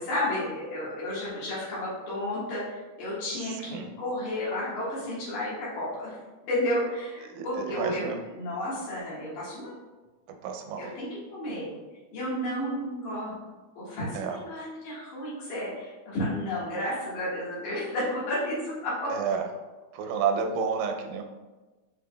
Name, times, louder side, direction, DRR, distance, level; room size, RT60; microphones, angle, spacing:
voice 1, 0.0-6.1 6.5-8.1 8.4-9.8 10.8-11.7 12.1-13.3 13.8-19.1, left 1 dB, 65° left, -9 dB, 2.9 m, -32 dB
voice 2, 3.3-3.9 7.2-8.2 10.3-11.0 14.1-14.4 19.1-19.5 19.9-21.2, right 6 dB, 85° right, 4 dB, 2.2 m, -31 dB
7.1 x 3.4 x 2.2 m, 1.2 s
omnidirectional pair, 3.7 m